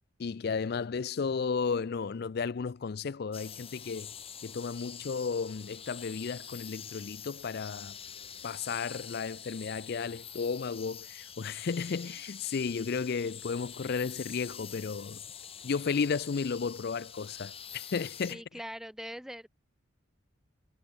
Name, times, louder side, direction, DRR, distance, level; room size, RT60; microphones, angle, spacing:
voice 1, 0.2-4.1 4.4-8.0 8.4-15.2 15.6-18.4, left 5 dB, 50° left, 0.4 m, -33 dB
sound 1, 3.3-18.3, left 8 dB, 30° left, 2.5 m, -46 dB
voice 2, 18.3-19.5, equal, ahead, 1.6 m, -42 dB
head